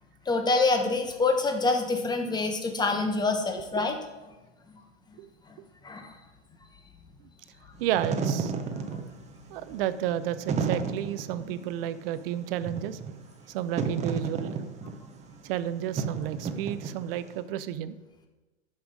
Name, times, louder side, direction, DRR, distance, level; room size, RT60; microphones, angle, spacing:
voice 1, 0.3-3.9 5.8-6.1, left 3 dB, 10° left, 4 dB, 1.1 m, -26 dB
Wind / Fire, 7.8-17.3, right 5 dB, 20° right, 0.9 m, -33 dB
voice 2, 7.8-8.5 9.5-13.0 13.5-14.6 15.4-17.9, right 11 dB, 50° right, 14 dB, 0.7 m, -31 dB
11.5 x 5.6 x 5.1 m, 1.2 s
hypercardioid pair, 115°, 36 cm